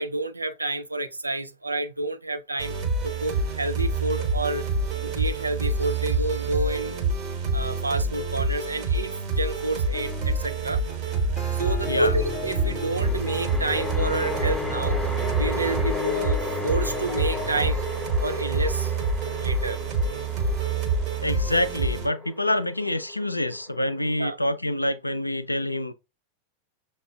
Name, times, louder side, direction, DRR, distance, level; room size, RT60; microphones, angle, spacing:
voice 1, 0.0-2.8 3.0-4.6 5.0-7.0 7.5-10.8 11.5-15.0 15.4-17.8 18.2-18.9 19.4-19.8 24.2-24.4, right 2 dB, 80° right, 0.4 m, -29 dB
sound 1, 2.6-22.1, right 3 dB, 40° right, 1.2 m, -27 dB
sound 2, 9.6-17.7, left 6 dB, 25° left, 0.5 m, -36 dB
sound 3, 9.9-10.0 12.9-24.3, left 2 dB, 10° right, 0.9 m, -35 dB
voice 2, 21.2-25.9, left 1 dB, 85° left, 0.4 m, -26 dB
6.8 x 2.3 x 2.3 m
figure-of-eight pair, 90°, 0 cm